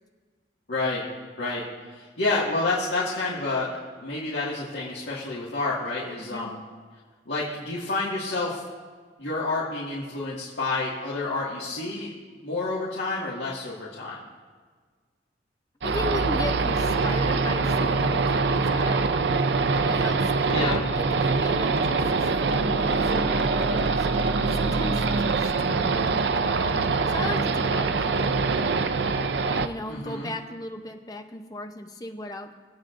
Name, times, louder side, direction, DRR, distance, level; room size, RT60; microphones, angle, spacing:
voice 1, 0.7-1.0 1.4-6.6 7.3-8.6 9.2-12.1 12.4-14.2 20.5-20.8 29.9-30.3, left 2 dB, 80° left, -7 dB, 1.9 m, -29 dB
voice 2, 15.8-19.0 19.8-20.3 20.6-20.8 21.2-24.1 24.4-26.8 27.1-28.0 29.6-32.5, left 1 dB, 20° left, 5 dB, 0.7 m, -36 dB
sound 1, 15.8-29.7, right 4 dB, 70° right, 0.5 m, -24 dB
22.0 x 8.3 x 2.6 m, 1.5 s
head